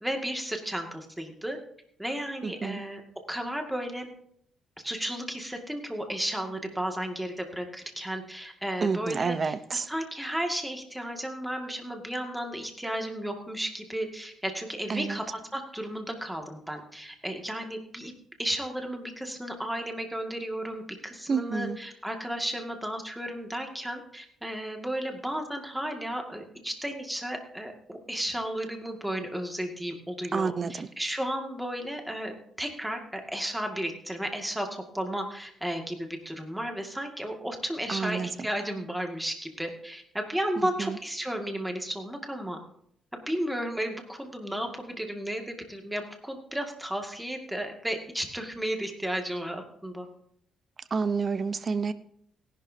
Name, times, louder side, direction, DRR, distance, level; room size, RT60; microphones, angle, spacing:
voice 1, 0.0-1.6 2.0-3.0 3.3-4.1 4.8-18.1 18.4-42.6 43.3-50.1, equal, 5° right, 3 dB, 2.1 m, -33 dB
voice 2, 2.4-2.8 8.8-9.9 14.9-15.2 21.3-21.8 30.3-30.9 37.9-38.5 40.8-41.0 50.9-51.9, right 5 dB, 40° right, 13 dB, 0.8 m, -29 dB
18.0 x 11.5 x 2.8 m, 0.68 s
cardioid pair, 90°, 0 cm